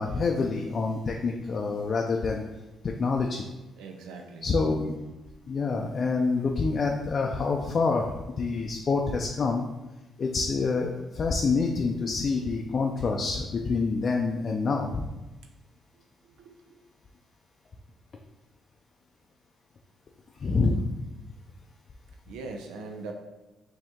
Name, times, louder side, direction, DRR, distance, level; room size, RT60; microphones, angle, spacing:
voice 1, 0.0-2.4 2.8-3.4 4.4-4.9 5.5-9.6 10.2-15.1 20.4-20.8, left 4 dB, 45° left, 1 dB, 0.4 m, -27 dB
voice 2, 3.8-4.5 15.9-16.8 22.3-23.1, right 3 dB, 90° right, 3 dB, 0.4 m, -42 dB
5.0 x 2.8 x 3.6 m, 1.1 s
cardioid pair, 80°, 0 cm